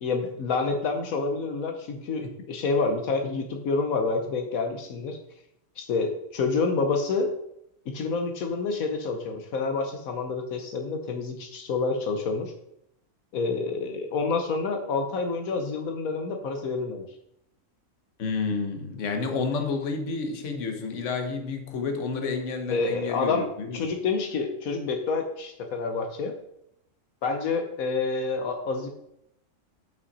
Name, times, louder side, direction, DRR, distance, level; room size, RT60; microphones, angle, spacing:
voice 1, 0.0-5.2 5.8-7.3 7.9-12.5 13.3-17.0 22.7-23.5 23.7-26.3 27.2-28.9, left 4 dB, 80° left, 4 dB, 1.3 m, -28 dB
voice 2, 18.2-23.9, left 4 dB, 60° left, 5 dB, 1.4 m, -30 dB
8.8 x 5.6 x 4.1 m, 0.77 s
omnidirectional pair, 1.4 m